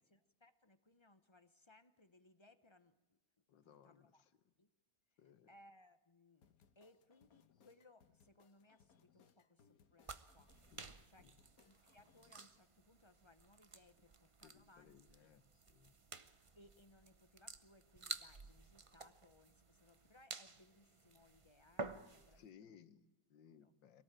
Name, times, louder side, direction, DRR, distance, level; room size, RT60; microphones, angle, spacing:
voice 1, 0.0-3.2 3.6-4.2 4.6-4.7 5.5-10.5 11.1-11.3 11.6-15.3 16.5-22.8 23.6-23.7, left 2 dB, 30° left, 11 dB, 0.5 m, -67 dB
voice 2, 3.5-4.5 5.2-5.5 10.7-10.9 11.2-11.3 14.4-16.0 22.3-24.0, left 8 dB, 90° left, 12 dB, 1.8 m, -64 dB
sound 1, 6.4-12.5, left 7 dB, 60° left, 1.5 m, -71 dB
sound 2, 10.0-22.4, right 3 dB, 40° right, 0.4 m, -53 dB
24.5 x 18.0 x 9.0 m, 0.98 s
omnidirectional pair, 1.9 m